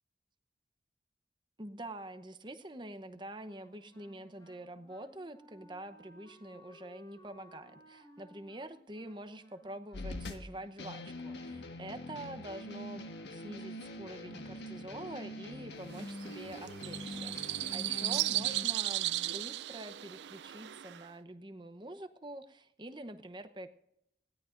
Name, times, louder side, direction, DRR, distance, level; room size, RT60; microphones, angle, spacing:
voice 1, 1.6-23.7, right 1 dB, 25° right, 9 dB, 0.8 m, -46 dB
Wind instrument woodwind instrument, 3.4-10.7, equal, 25° left, 3.9 m, -60 dB
sound 1, 9.9-18.7, left 1 dB, 75° left, 1.4 m, -44 dB
sound 2, 15.9-21.1, right 15 dB, 80° right, 0.4 m, -36 dB
20.5 x 17.0 x 2.6 m, 0.79 s
head